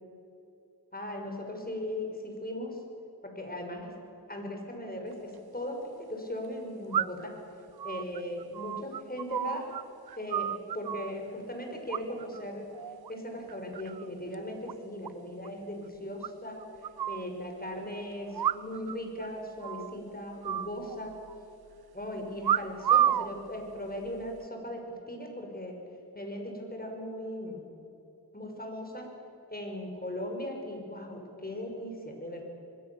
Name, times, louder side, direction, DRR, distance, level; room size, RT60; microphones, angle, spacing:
voice 1, 0.9-2.8 3.2-3.9 4.3-7.4 7.8-9.7 10.2-12.7 13.1-16.7 17.1-21.2 21.9-25.8 26.1-27.6 28.3-29.2 29.5-32.4, left 1 dB, 20° left, 2 dB, 5.9 m, -38 dB
sound 1, 5.1-5.2 6.9-7.4 7.8-9.8 10.1-11.1 11.9-12.4 12.7-13.1 13.5-14.1 14.3-14.4 14.7-14.8 15.0-15.1 15.4-15.5 16.2-17.3 18.3-19.0 19.2-19.3 19.6-20.0 20.4-21.4 22.4-23.3 24.0-24.4, right 10 dB, 65° right, 0.6 m, -30 dB
25.0 x 21.5 x 7.2 m, 2.9 s
cardioid pair, 55°, 40 cm